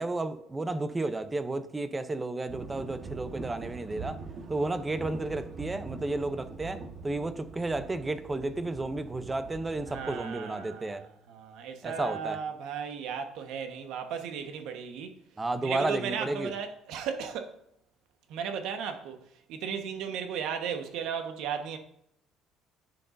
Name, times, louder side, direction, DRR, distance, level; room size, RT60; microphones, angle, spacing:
voice 1, 0.0-4.2 4.5-6.8 7.0-11.0 11.8-12.4 15.4-16.5, right 2 dB, 15° right, 0.6 m, -32 dB
sound 1, 2.5-10.2, right 4 dB, 45° right, 1.2 m, -43 dB
voice 2, 9.9-15.1 15.6-17.5 18.3-19.2 19.5-21.8, right 7 dB, 75° right, 1.2 m, -35 dB
10.5 x 7.8 x 2.6 m
cardioid pair, 145°, 0 cm